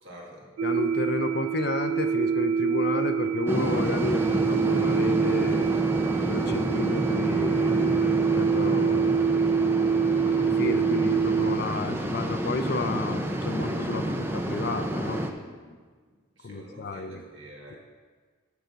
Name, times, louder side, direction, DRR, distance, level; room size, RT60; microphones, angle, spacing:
voice 1, 0.0-0.5 9.5-9.9 15.2-15.8 16.4-17.8, equal, 60° right, -3 dB, 1.9 m, -47 dB
voice 2, 0.6-5.7 6.3-9.2 10.3-15.2 16.4-17.2, left 3 dB, 50° left, 8 dB, 0.5 m, -32 dB
sound 1, 0.6-11.6, right 6 dB, 90° right, 0.3 m, -25 dB
sound 2, 3.5-15.3, right 1 dB, 10° right, 0.5 m, -29 dB
11.5 x 3.9 x 6.8 m, 1.5 s
head